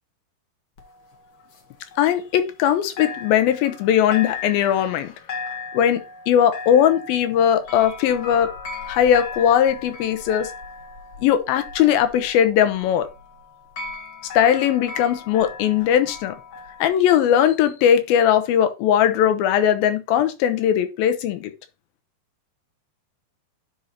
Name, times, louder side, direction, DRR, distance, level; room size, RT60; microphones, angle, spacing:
sound 1, 0.8-2.7 3.0-16.9, left 4 dB, 65° left, 1.2 m, -37 dB
voice 1, 2.0-5.1 5.7-8.5 8.9-10.5 11.2-13.1 14.4-16.4 16.8-21.5, left 9 dB, 85° left, 2.6 m, -19 dB
10.0 x 5.4 x 2.8 m
omnidirectional pair, 4.2 m